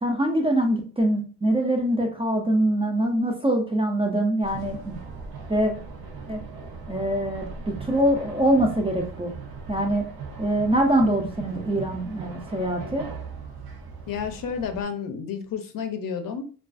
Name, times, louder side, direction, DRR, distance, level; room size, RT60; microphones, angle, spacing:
voice 1, 0.0-5.0 5.5-5.7 6.3-6.4 6.9-9.3 9.7-10.0 10.4-13.0, right 1 dB, 15° right, 1 dB, 0.3 m, -23 dB
sound 1, 4.4-14.8, right 5 dB, 80° right, 0.6 m, -39 dB
voice 2, 14.1-16.4, left 7 dB, 65° left, 7 dB, 0.5 m, -31 dB
2.3 x 2.3 x 2.4 m, 0.39 s
wide cardioid pair, 125°, 36 cm